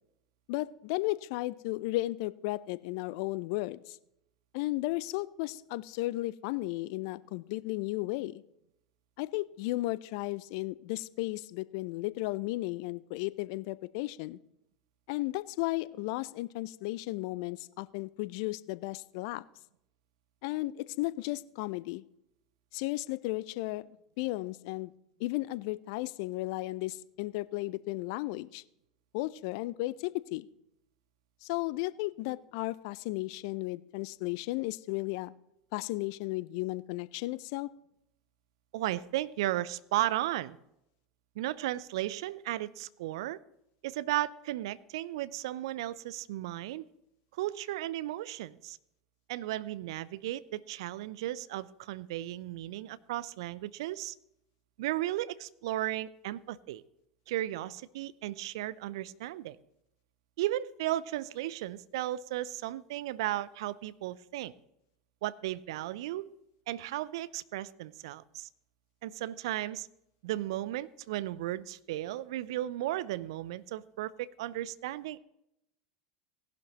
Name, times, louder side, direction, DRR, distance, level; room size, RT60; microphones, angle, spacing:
voice 1, 0.5-4.0 4.5-8.4 9.2-14.4 15.1-19.4 20.4-22.0 22.7-23.9 24.2-24.9 25.2-28.6 29.1-30.5 31.4-35.3 35.7-37.7, left 19 dB, 55° left, 18 dB, 0.5 m, -34 dB
voice 2, 38.7-40.6 41.4-43.4 43.8-46.9 47.3-48.8 49.3-54.1 54.8-56.8 57.3-59.6 60.4-64.5 65.2-66.3 66.7-68.5 69.0-69.9 70.2-75.2, right 14 dB, 65° right, 18 dB, 0.5 m, -35 dB
18.0 x 11.5 x 3.0 m, 0.81 s
figure-of-eight pair, 80°, 3 cm